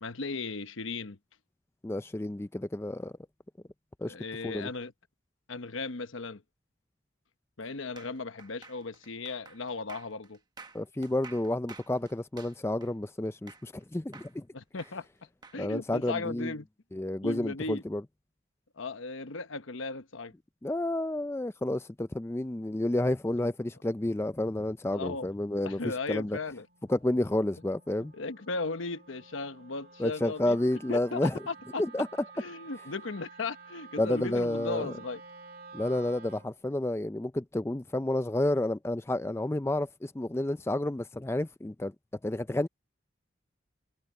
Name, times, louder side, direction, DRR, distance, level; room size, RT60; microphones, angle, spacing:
voice 1, 0.0-1.2 4.0-4.9 5.5-6.4 7.6-10.4 14.5-15.1 15.5-16.7 17.2-17.8 18.8-20.3 24.9-25.3 25.6-26.7 28.1-30.6 30.9-31.2 31.5-31.8 32.4-35.2, left 3 dB, 80° left, 1.0 m, -36 dB
voice 2, 1.8-3.1 4.0-4.2 4.4-4.7 10.7-14.5 15.6-16.5 16.9-18.0 20.6-26.4 26.9-28.1 30.0-31.4 31.8-32.1 34.0-34.9 35.7-41.9 42.2-42.7, left 1 dB, 15° left, 0.4 m, -30 dB
sound 1, 8.0-13.8 14.1-15.6, right 4 dB, 20° right, 1.0 m, -51 dB
Wind instrument woodwind instrument, 25.0-36.6, right 4 dB, 50° right, 2.4 m, -52 dB
head